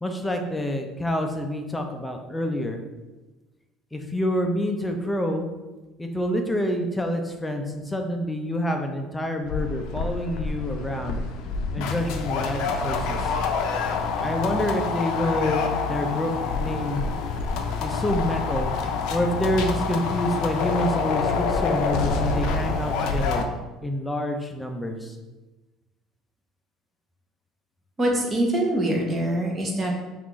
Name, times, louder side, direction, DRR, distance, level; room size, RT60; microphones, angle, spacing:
voice 1, 0.0-2.8 3.9-5.5 6.0-11.2 11.7-13.3 14.2-17.1 17.8-18.7 19.1-23.4 23.8-25.1, left 1 dB, 10° left, 4 dB, 0.5 m, -27 dB
sound 1, 9.5-23.4, left 4 dB, 75° left, 0.5 m, -27 dB
voice 2, 28.0-29.9, right 1 dB, 20° right, -1 dB, 0.9 m, -24 dB
5.7 x 2.5 x 3.1 m, 1.1 s
cardioid pair, 130°, 0 cm